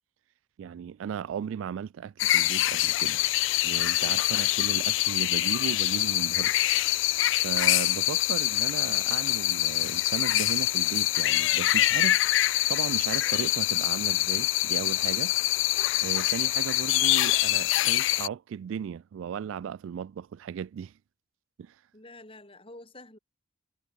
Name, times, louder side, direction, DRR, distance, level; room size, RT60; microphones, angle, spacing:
voice 1, 0.6-3.2 3.6-15.3 16.0-20.9 21.6-21.8, right 8 dB, 75° right, 0.3 m, -36 dB
sound 1, 2.2-18.3, left 17 dB, 65° left, 0.3 m, -25 dB
voice 2, 21.9-23.2, left 2 dB, 25° left, 6.4 m, -48 dB
head